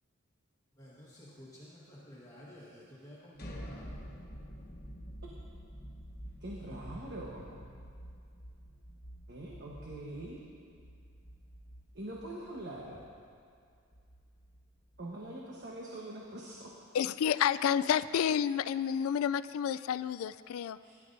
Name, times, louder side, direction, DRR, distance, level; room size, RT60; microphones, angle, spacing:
voice 1, 0.8-3.9, equal, 15° left, 1.5 m, -52 dB
sound 1, 3.3-15.2, equal, 45° left, 1.2 m, -49 dB
voice 2, 6.4-7.6 9.3-10.4 11.9-13.0 15.0-16.7 20.8-21.0, right 1 dB, 55° right, 1.1 m, -43 dB
voice 3, 16.9-20.8, left 8 dB, 90° left, 0.3 m, -30 dB
16.5 x 11.0 x 2.6 m
head